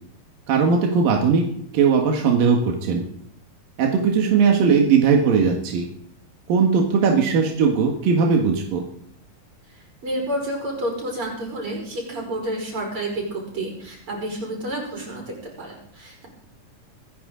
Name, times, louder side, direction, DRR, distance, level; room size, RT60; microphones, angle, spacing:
voice 1, 0.5-1.4 1.7-3.0 3.8-5.9 6.5-8.8, right 5 dB, 80° right, 1 dB, 3.4 m, -19 dB
voice 2, 10.0-16.3, right 1 dB, 40° right, -1 dB, 5.9 m, -30 dB
26.5 x 10.5 x 3.8 m, 0.69 s
omnidirectional pair, 3.9 m